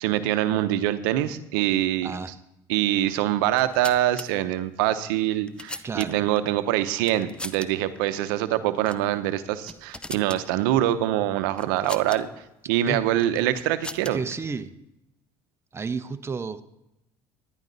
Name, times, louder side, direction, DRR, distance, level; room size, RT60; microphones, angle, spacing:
voice 1, 0.0-2.1 2.7-12.3 12.7-14.2, right 13 dB, 90° right, 12 dB, 0.7 m, -24 dB
voice 2, 2.0-2.3 5.8-6.2 12.9-13.0 14.1-14.7 15.7-16.6, right 5 dB, 25° right, 9 dB, 0.8 m, -31 dB
sound 1, 3.5-4.3 5.1-6.4 7.0-7.7 8.0-8.1 8.8-9.1 9.4-10.4 11.6-12.2 13.2-14.3, left 2 dB, 10° left, 0.6 m, -39 dB
11.0 x 11.0 x 4.0 m, 0.86 s
supercardioid pair, 90°, 11 cm